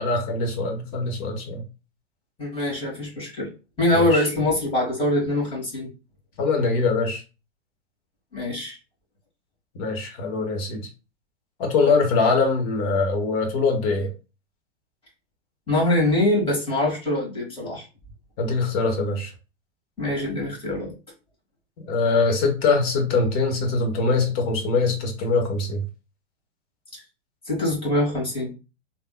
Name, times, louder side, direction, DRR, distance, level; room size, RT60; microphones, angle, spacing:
voice 1, 0.0-1.6 3.9-4.2 6.4-7.2 9.8-10.9 11.6-14.1 18.4-19.3 21.9-25.8, left 4 dB, 40° left, 3 dB, 1.2 m, -23 dB
voice 2, 2.4-3.5 3.8-5.9 8.3-8.8 15.7-17.9 20.0-20.9 26.9-27.0 27.5-28.5, left 1 dB, 15° left, -4 dB, 1.9 m, -23 dB
3.4 x 2.8 x 2.3 m, 0.31 s
hypercardioid pair, 115°, 36 cm